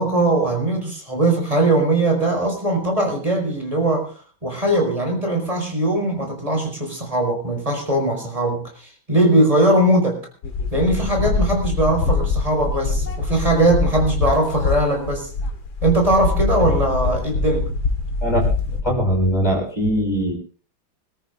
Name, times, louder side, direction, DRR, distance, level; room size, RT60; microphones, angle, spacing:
voice 1, 0.0-4.1 4.4-10.2 10.7-15.3 15.8-17.7, right 1 dB, 15° right, 2 dB, 4.9 m, -20 dB
sound 1, 10.4-18.8, left 3 dB, 75° left, 2.5 m, -23 dB
voice 2, 18.8-20.3, equal, 20° left, 0 dB, 6.9 m, -20 dB
26.5 x 13.5 x 2.6 m, 0.38 s
omnidirectional pair, 2.2 m